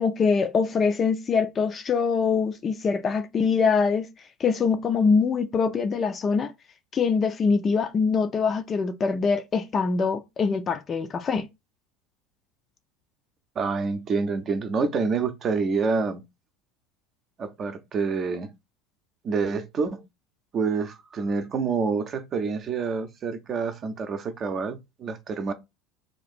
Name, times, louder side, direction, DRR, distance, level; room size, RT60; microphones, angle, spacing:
voice 1, 0.0-4.1 4.4-6.5 6.9-11.5, left 5 dB, 30° left, 0.5 m, -23 dB
voice 2, 13.6-16.2 17.4-18.5 19.2-20.0 20.5-25.5, right 4 dB, 35° right, 0.6 m, -27 dB
2.9 x 2.5 x 4.2 m
figure-of-eight pair, 75°, 0 cm